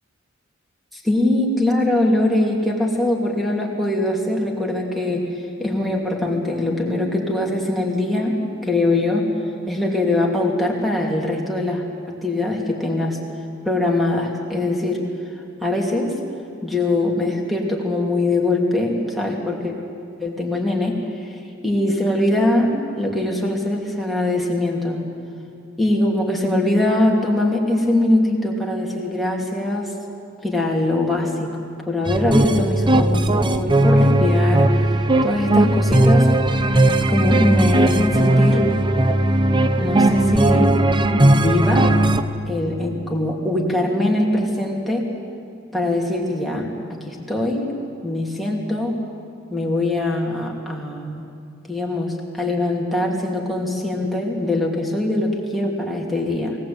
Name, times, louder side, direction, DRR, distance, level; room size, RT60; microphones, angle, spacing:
voice 1, 0.9-5.3 5.6-9.2 9.7-13.2 13.6-15.0 15.6-16.1 16.6-19.7 20.2-20.9 21.6-22.7 23.0-25.0 25.8-29.9 30.4-31.5 31.9-34.9 35.2-36.3 36.7-36.8 37.1-38.7 39.8-40.7 41.1-42.0 42.5-45.1 45.7-47.7 48.0-49.0 49.5-51.2 51.7-56.6, left 1 dB, ahead, -1 dB, 3.0 m, -22 dB
sound 1, 32.1-42.2, right 1 dB, 25° right, 0.8 m, -17 dB
22.5 x 18.5 x 8.8 m, 2.5 s
head